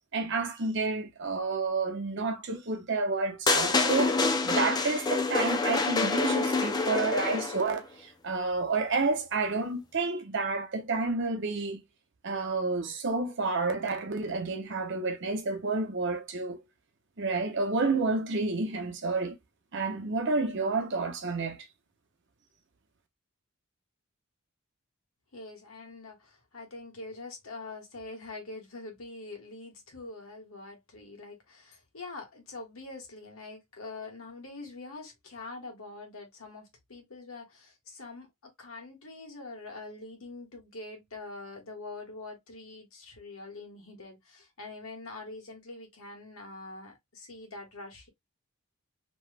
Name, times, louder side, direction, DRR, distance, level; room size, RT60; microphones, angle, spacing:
voice 1, 0.1-11.8 12.2-16.6 17.2-19.4 19.7-21.7, right 3 dB, 55° right, 0.8 m, -30 dB
sound 1, 3.5-7.7, left 3 dB, 20° left, 0.4 m, -27 dB
voice 2, 25.3-48.1, left 3 dB, 75° left, 1.4 m, -44 dB
3.0 x 2.1 x 3.3 m
head